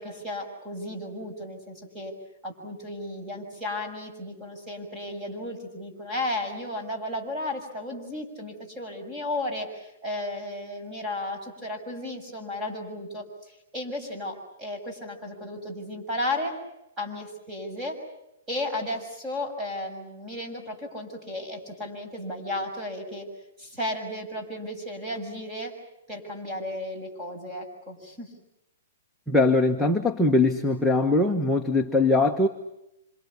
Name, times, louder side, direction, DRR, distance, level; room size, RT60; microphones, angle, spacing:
voice 1, 0.0-2.1 2.4-16.5 17.0-18.0 18.5-23.3 23.6-25.7 26.1-28.3, left 1 dB, 15° right, 3 dB, 6.5 m, -34 dB
voice 2, 29.3-32.5, left 2 dB, ahead, 0 dB, 1.2 m, -21 dB
27.5 x 26.5 x 7.2 m, 0.87 s
hypercardioid pair, 160°, 0 cm